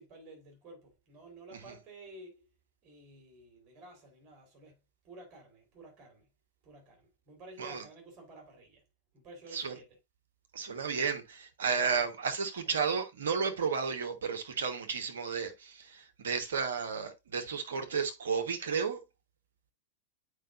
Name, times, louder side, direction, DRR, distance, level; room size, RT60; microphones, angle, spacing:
voice 1, 0.0-2.4 2.8-6.3 6.6-8.8 9.1-10.0 11.7-12.1 12.6-12.8, right 2 dB, 35° right, 3.8 m, -52 dB
voice 2, 10.5-19.0, right 6 dB, 65° right, 1.3 m, -33 dB
9.0 x 4.9 x 2.6 m
figure-of-eight pair, 90°, 0 cm